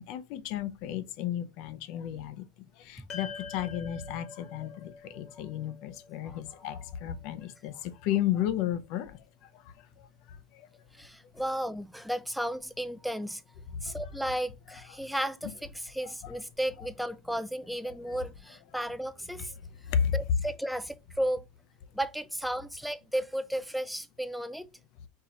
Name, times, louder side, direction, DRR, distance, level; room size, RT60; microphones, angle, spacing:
voice 1, 0.0-2.4 2.8-9.2 13.9-14.0 16.2-16.4 19.9-20.1, left 10 dB, 55° left, 0.6 m, -33 dB
sound 1, 3.1-7.6, left 5 dB, 40° left, 1.3 m, -46 dB
voice 2, 6.3-6.7 10.9-13.4 13.8-19.5 20.1-21.4 21.9-24.7, right 1 dB, ahead, 0.3 m, -34 dB
4.6 x 2.9 x 3.7 m
supercardioid pair, 140°, 0 cm